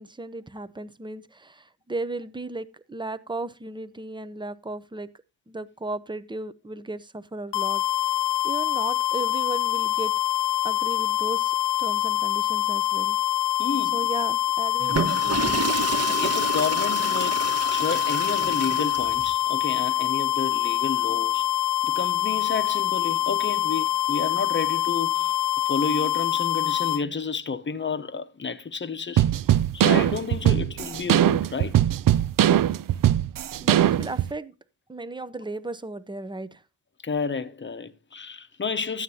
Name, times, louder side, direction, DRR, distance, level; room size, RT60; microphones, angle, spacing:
voice 1, 0.0-5.1 5.5-7.8 8.4-10.1 10.6-11.5 11.8-13.2 13.9-15.6 33.6-34.5 34.9-36.6, right 2 dB, 10° right, 0.7 m, -35 dB
sound 1, 7.5-27.0, left 12 dB, 65° left, 0.6 m, -25 dB
voice 2, 13.6-14.0 16.1-21.5 21.8-25.4 25.6-29.3 29.7-31.8 37.0-39.0, left 5 dB, 25° left, 0.9 m, -31 dB
Water / Toilet flush, 14.8-19.3, right 4 dB, 35° right, 1.4 m, -29 dB
sound 2, 29.2-34.3, right 11 dB, 50° right, 0.5 m, -20 dB
13.5 x 9.3 x 2.8 m
wide cardioid pair, 120°, 44 cm